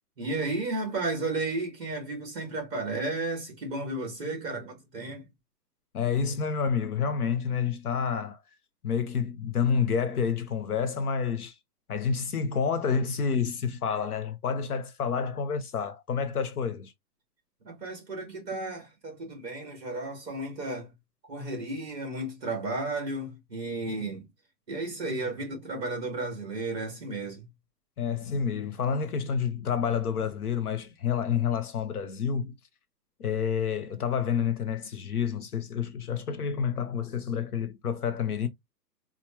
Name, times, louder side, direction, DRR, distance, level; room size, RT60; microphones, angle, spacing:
voice 1, 0.2-5.2 17.6-20.9 21.3-24.2 24.7-27.4, right 2 dB, 10° right, 1.6 m, -33 dB
voice 2, 5.9-8.4 8.8-11.5 11.9-16.9 28.0-32.5 33.2-38.5, left 6 dB, 65° left, 0.7 m, -29 dB
4.5 x 2.3 x 2.8 m
hypercardioid pair, 175°, 49 cm